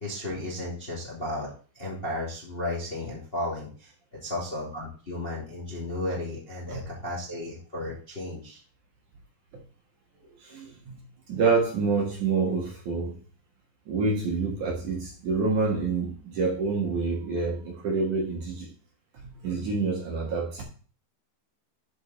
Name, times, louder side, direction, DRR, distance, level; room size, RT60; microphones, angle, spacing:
voice 1, 0.0-1.5 1.7-3.9 4.2-8.6, left 1 dB, 20° left, -4 dB, 2.0 m, -34 dB
voice 2, 10.4-11.0 11.3-13.1 13.9-18.7 19.1-20.6, right 4 dB, 55° right, -1 dB, 2.7 m, -27 dB
11.0 x 5.0 x 4.1 m, 0.40 s
omnidirectional pair, 4.9 m